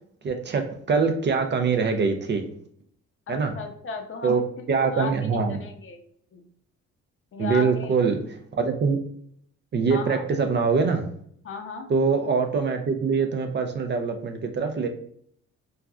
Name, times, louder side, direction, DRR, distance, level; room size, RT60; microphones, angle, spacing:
voice 1, 0.2-0.6 0.9-2.5 3.3-3.5 4.2-4.4 4.7-5.6 7.4-9.0 9.7-11.1 11.9-14.9, right 5 dB, 35° right, 5 dB, 0.4 m, -23 dB
voice 2, 3.3-4.5 4.9-5.1 5.6-6.0 6.3-6.4 7.3-7.9 9.9-10.2 11.4-11.9, left 5 dB, 45° left, 4 dB, 0.6 m, -35 dB
3.2 x 2.4 x 2.3 m, 0.64 s
cardioid pair, 90°, 30 cm